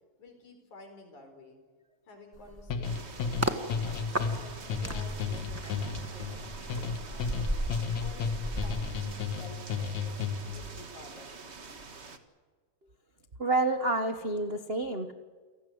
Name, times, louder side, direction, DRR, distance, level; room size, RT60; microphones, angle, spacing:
voice 1, 0.2-1.6 2.1-7.6 8.0-11.8, left 2 dB, 90° left, 5 dB, 5.9 m, -52 dB
sound 1, 2.3-3.6 4.1-9.7 10.0-10.3, equal, 10° right, 0.8 m, -36 dB
sound 2, 2.7-10.6, left 5 dB, 75° left, 2.8 m, -33 dB
sound 3, 2.8-12.2, right 4 dB, 30° right, 1.3 m, -45 dB
voice 2, 13.4-15.1, right 2 dB, 60° right, 6 dB, 0.6 m, -28 dB
29.5 x 17.5 x 8.0 m, 1.5 s
omnidirectional pair, 3.3 m